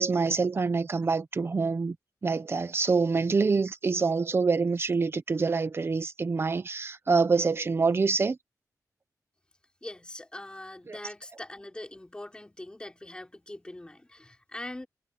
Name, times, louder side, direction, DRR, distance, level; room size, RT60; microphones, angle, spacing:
voice 1, 0.0-2.0 2.2-8.4 10.9-11.0, right 4 dB, 40° right, 1.1 m, -26 dB
voice 2, 9.8-14.9, left 1 dB, 15° left, 3.7 m, -42 dB
wide cardioid pair, 110°, 6 cm